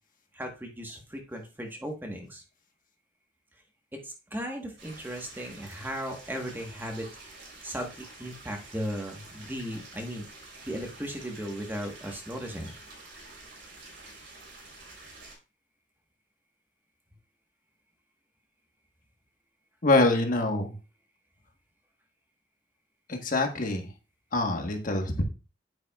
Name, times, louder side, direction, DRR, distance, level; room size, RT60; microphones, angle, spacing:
voice 1, 0.3-2.4 3.9-7.1 7.6-10.3 10.6-12.7, equal, 10° right, 2 dB, 1.3 m, -36 dB
sound 1, 4.8-15.4, right 2 dB, 75° right, 3.8 m, -48 dB
voice 2, 19.8-20.7 23.1-23.9 24.3-25.2, left 2 dB, 50° left, 4 dB, 1.3 m, -25 dB
8.7 x 8.6 x 2.4 m, 0.31 s
head